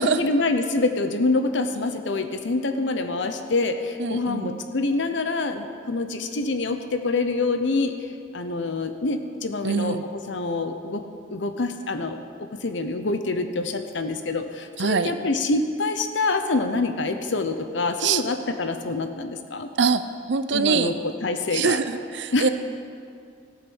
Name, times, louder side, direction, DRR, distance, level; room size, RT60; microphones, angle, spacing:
voice 1, 0.2-8.0 8.3-10.0 10.3-11.0 11.3-19.7 20.5-21.8 22.3-22.5, left 3 dB, 70° left, 8 dB, 0.8 m, -26 dB
voice 2, 4.0-4.6 9.6-10.0 14.8-15.1 18.0-18.2 19.8-20.0 20.3-20.9 21.5-22.5, right 5 dB, 65° right, 11 dB, 0.5 m, -23 dB
15.0 x 8.6 x 6.3 m, 2.3 s
head